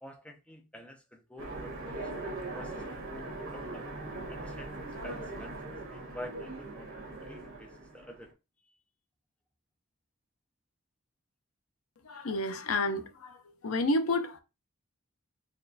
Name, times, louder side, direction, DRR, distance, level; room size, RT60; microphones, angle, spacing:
voice 1, 0.0-2.1 2.5-3.9 4.3-5.6 5.9-8.3 8.6-8.8, left 1 dB, 5° left, 0.5 m, -48 dB
Train, 1.4-8.3, right 2 dB, 65° right, 1.2 m, -40 dB
voice 2, 12.0-13.4 13.6-14.4, left 2 dB, 70° left, 0.6 m, -30 dB
4.2 x 3.0 x 2.6 m
head